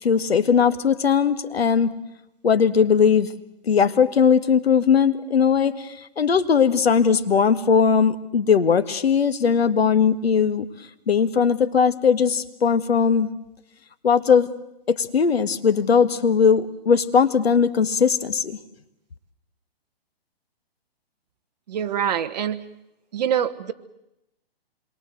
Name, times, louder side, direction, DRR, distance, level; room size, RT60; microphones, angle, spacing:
voice 1, 0.0-1.9 2.4-3.3 3.6-10.7 11.1-13.3 14.0-14.5 14.9-18.6, left 6 dB, 85° left, 12 dB, 1.9 m, -19 dB
voice 2, 21.7-22.6 23.1-23.7, right 9 dB, 45° right, 8 dB, 1.4 m, -24 dB
27.0 x 22.0 x 7.9 m, 0.87 s
hypercardioid pair, 165°, 30 cm